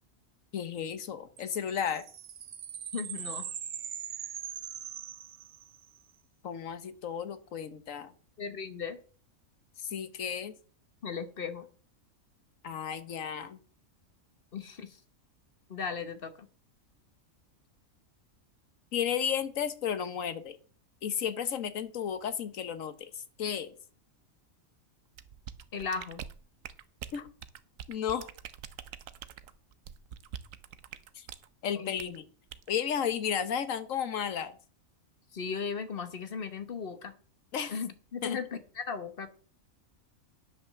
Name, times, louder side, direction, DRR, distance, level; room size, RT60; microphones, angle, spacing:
voice 1, 0.5-2.0 6.4-8.1 9.8-10.5 12.6-13.6 18.9-20.6 21.0-23.1 23.4-23.7 27.1-27.3 27.9-28.3 31.1-31.3 31.6-32.2 32.7-34.5 37.5-37.7 38.2-38.4, left 8 dB, 70° left, 12 dB, 1.4 m, -33 dB
sound 1, 1.4-6.0, right 9 dB, 55° right, 0.5 m, -41 dB
voice 2, 2.9-3.5 8.4-9.0 11.0-11.7 14.5-15.0 15.7-16.5 25.7-26.2 31.7-32.1 35.3-37.1 37.7-39.3, left 5 dB, 45° left, 11 dB, 1.3 m, -37 dB
sound 2, 25.2-31.5 32.0-32.2 32.5-32.7, right 9 dB, 75° right, 1.1 m, -44 dB
10.5 x 5.8 x 6.7 m, 0.41 s
omnidirectional pair, 1.4 m